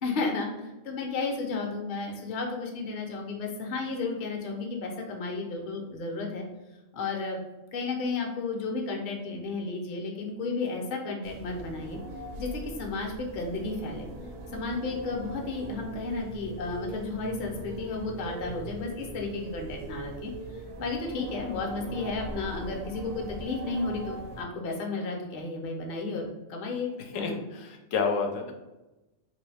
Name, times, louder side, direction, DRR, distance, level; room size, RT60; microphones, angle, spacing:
voice 1, 0.0-6.4 6.9-7.4 7.7-12.0 12.4-14.1 14.5-27.4, left 3 dB, 50° left, 1 dB, 0.7 m, -33 dB
sound 1, 11.2-24.4, right 2 dB, 80° right, 1.0 m, -41 dB
voice 2, 27.1-28.5, left 5 dB, 85° left, 4 dB, 1.0 m, -29 dB
3.1 x 3.0 x 3.2 m, 1.0 s
omnidirectional pair, 1.3 m